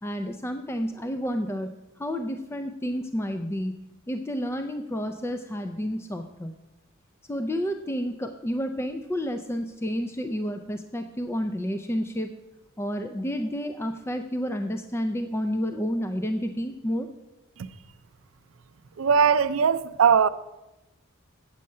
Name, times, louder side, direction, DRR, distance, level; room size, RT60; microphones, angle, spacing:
voice 1, 0.0-6.5 7.3-12.3 12.8-17.1, equal, 10° left, 0.4 m, -30 dB
voice 2, 19.0-20.3, right 6 dB, 75° right, 0.5 m, -20 dB
8.5 x 7.6 x 5.4 m
head